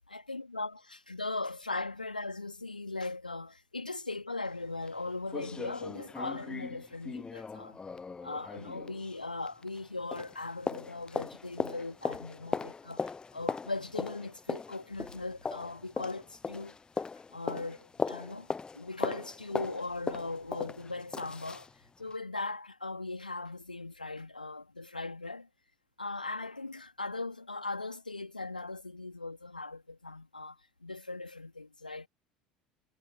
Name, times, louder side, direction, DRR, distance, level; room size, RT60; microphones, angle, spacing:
voice 1, 0.0-7.8 8.2-16.7 17.3-21.7 22.0-25.5 26.0-32.1, left 3 dB, 85° left, 2.8 m, -39 dB
sound 1, 4.5-4.6 4.9-5.0 5.3-9.9 10.1-21.7 22.1-22.2, left 4 dB, 20° left, 1.0 m, -38 dB
figure-of-eight pair, 70°, 5 cm